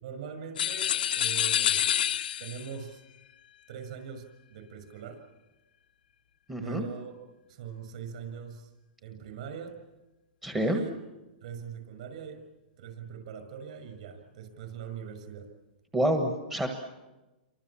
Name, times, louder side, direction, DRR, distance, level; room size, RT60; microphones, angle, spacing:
voice 1, 0.0-1.8 2.4-3.0 3.7-5.2 6.5-7.1 7.5-8.7 9.0-9.7 10.6-10.9 11.4-12.4 12.8-15.5, right 7 dB, 45° right, 8 dB, 6.1 m, -41 dB
sound 1, 0.6-2.7, left 10 dB, 60° left, 0.9 m, -27 dB
voice 2, 6.5-6.8 10.4-10.8 15.9-16.7, right 1 dB, 5° right, 3 dB, 1.3 m, -27 dB
29.5 x 24.5 x 7.4 m, 1.1 s
hypercardioid pair, 175°, 5 cm